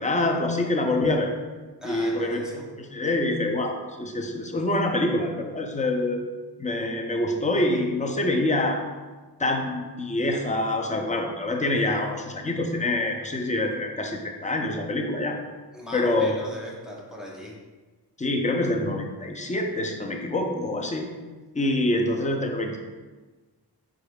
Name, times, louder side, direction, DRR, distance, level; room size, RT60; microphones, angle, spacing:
voice 1, 0.0-1.3 1.8-6.2 6.6-8.8 9.4-15.4 15.9-16.4 18.2-21.1 21.5-22.8, left 2 dB, 20° left, 3 dB, 0.5 m, -26 dB
voice 2, 1.8-2.6 15.7-17.5, equal, ahead, -3 dB, 0.9 m, -38 dB
4.9 x 4.5 x 2.3 m, 1.3 s
wide cardioid pair, 90°, 42 cm